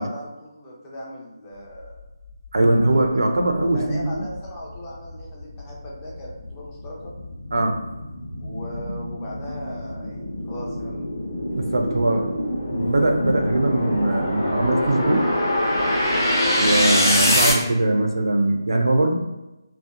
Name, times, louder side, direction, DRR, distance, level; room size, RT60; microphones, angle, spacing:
voice 1, 0.0-2.0 2.7-3.1 3.7-7.1 8.4-11.1 12.1-12.2, equal, 15° left, -5 dB, 0.6 m, -38 dB
voice 2, 2.5-4.2 7.5-7.8 11.5-12.3 12.7-15.3 16.6-19.1, right 2 dB, 65° right, 4 dB, 0.4 m, -21 dB
sound 1, 3.4-17.5, left 1 dB, 40° left, 1.0 m, -25 dB
2.8 x 2.0 x 2.4 m, 1.0 s
figure-of-eight pair, 155°, 2 cm